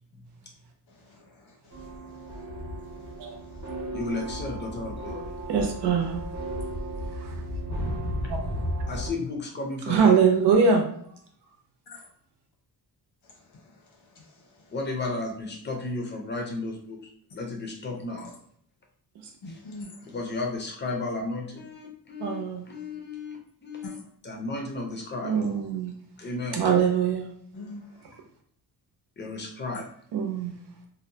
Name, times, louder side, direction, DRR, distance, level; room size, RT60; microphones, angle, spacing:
voice 1, 0.9-3.7 11.9-12.1 13.2-13.8 14.1-14.7 18.2-18.3 19.4-20.1 23.8-24.0 27.5-28.0, left 2 dB, 80° left, -1 dB, 1.0 m, -46 dB
sound 1, 1.7-9.1, equal, 45° right, 0.8 m, -34 dB
voice 2, 3.9-5.2 8.9-10.2 14.7-18.3 19.5-19.6 20.0-24.0 24.2-25.3 26.2-26.6 29.2-29.9, left 2 dB, 30° left, 2 dB, 0.5 m, -34 dB
voice 3, 5.5-6.2 7.2-7.3 8.3-8.4 9.9-10.8 22.2-22.6 25.2-25.9 26.5-27.3 30.1-30.5, right 6 dB, 85° right, 3 dB, 0.7 m, -22 dB
2.6 x 2.1 x 2.7 m, 0.63 s
wide cardioid pair, 160°, 40 cm